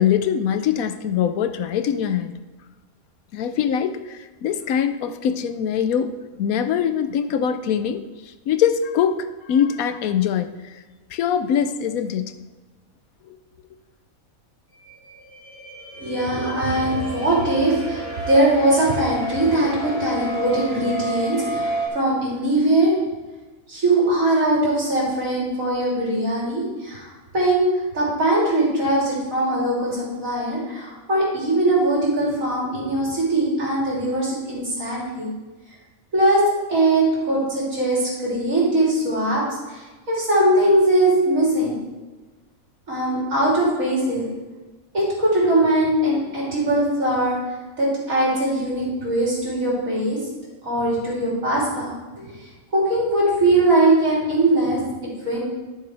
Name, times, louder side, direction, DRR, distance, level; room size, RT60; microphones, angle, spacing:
voice 1, 0.0-2.3 3.3-6.1 6.4-8.0 8.5-10.8 11.1-12.3 13.3-13.4, left 8 dB, 80° left, 10 dB, 1.1 m, -23 dB
sound 1, 14.8-21.9, right 2 dB, 40° left, 3.5 m, -31 dB
voice 2, 16.0-23.0 23.7-27.1 27.3-27.7 27.9-35.3 36.1-36.4 36.7-41.8 42.9-44.3 44.9-47.4 47.8-50.2 50.6-52.0 52.2-52.4 52.7-55.4, right 1 dB, 65° right, -6 dB, 3.6 m, -21 dB
13.0 x 6.9 x 3.3 m, 1.2 s
omnidirectional pair, 1.5 m